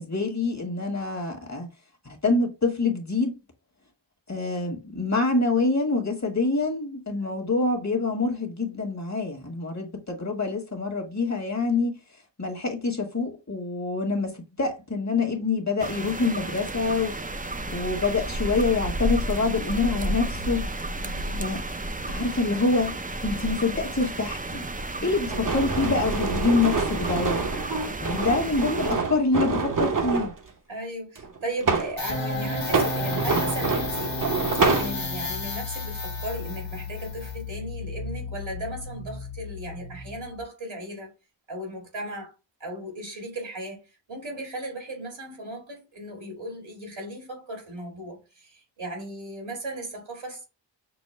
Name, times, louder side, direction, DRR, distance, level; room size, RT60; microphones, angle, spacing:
voice 1, 0.0-1.7 2.0-3.4 4.3-12.0 12.4-17.2 17.7-20.7 21.4-21.6 22.1-23.0 23.2-24.6 25.0-27.4 28.0-30.3, left 3 dB, 35° left, 1.4 m, -26 dB
sound 1, 15.8-28.9, right 1 dB, 20° right, 0.5 m, -32 dB
voice 2, 21.0-21.6 30.7-34.2 34.8-41.1 41.5-42.3 42.6-50.4, right 1 dB, 90° right, 2.0 m, -37 dB
sound 2, 25.3-30.3 31.2-32.0 32.6-34.9, right 4 dB, 45° right, 0.8 m, -26 dB
sound 3, 32.0-40.4, left 2 dB, 85° left, 1.3 m, -32 dB
6.2 x 2.1 x 3.1 m
wide cardioid pair, 65°, 45 cm